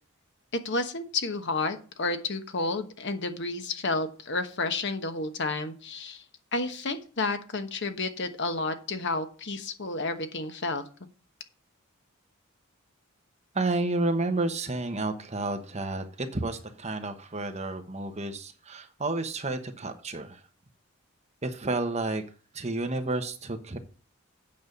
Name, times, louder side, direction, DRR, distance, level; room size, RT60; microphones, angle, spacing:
voice 1, 0.5-6.2 6.5-10.8, left 3 dB, 55° left, 1.2 m, -31 dB
voice 2, 13.5-20.4 21.4-22.2 22.5-23.8, right 2 dB, 30° right, 1.1 m, -31 dB
8.8 x 5.5 x 6.6 m
head